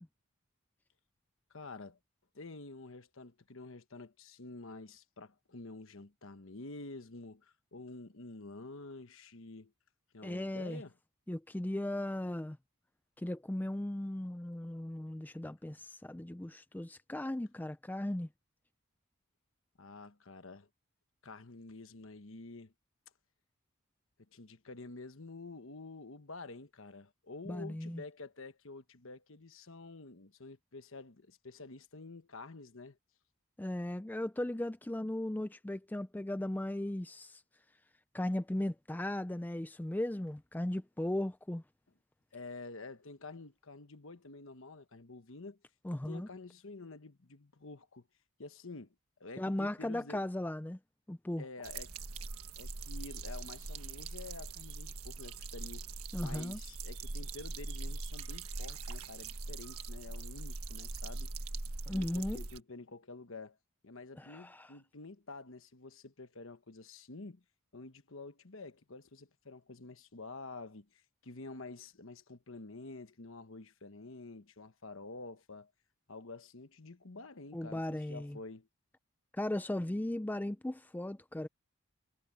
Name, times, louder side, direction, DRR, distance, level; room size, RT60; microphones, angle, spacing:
voice 1, 1.5-2.0 2.3-9.7 10.1-10.9 19.8-20.7 21.2-22.7 24.3-33.0 42.3-45.6 45.9-48.1 48.4-50.2 51.4-52.0 52.6-55.9 56.2-61.3 61.9-63.6 63.8-67.4 67.7-75.7 76.1-78.7, left 3 dB, 65° left, 1.2 m, -49 dB
voice 2, 10.2-10.8 11.3-12.6 13.2-18.3 27.5-28.0 33.6-37.4 38.1-41.6 45.8-46.3 49.4-50.8 51.1-51.4 56.1-56.6 61.9-62.4 64.2-64.7 77.5-78.4 79.3-81.5, left 1 dB, 10° left, 0.4 m, -37 dB
sound 1, 51.6-62.6, right 3 dB, 85° right, 1.5 m, -42 dB
head